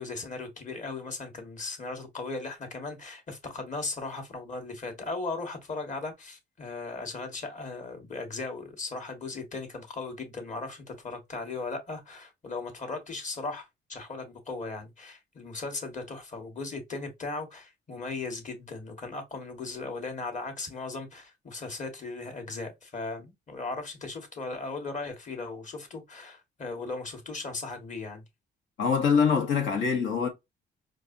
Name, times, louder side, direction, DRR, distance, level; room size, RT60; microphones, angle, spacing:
voice 1, 0.0-28.2, left 3 dB, 40° left, 1.6 m, -37 dB
voice 2, 28.8-30.3, left 6 dB, 70° left, 1.5 m, -24 dB
4.5 x 2.6 x 2.6 m
cardioid pair, 90°, 20 cm